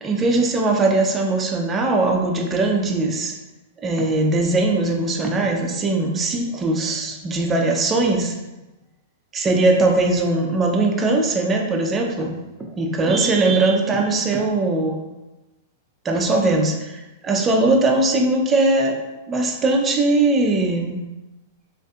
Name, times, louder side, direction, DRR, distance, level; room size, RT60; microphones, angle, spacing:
voice 1, 0.0-3.3 3.8-8.4 9.3-15.0 16.0-19.0 19.3-21.1, right 2 dB, 20° right, 2 dB, 0.4 m, -20 dB
2.5 x 2.5 x 2.2 m, 1.0 s
hypercardioid pair, 115°, 0 cm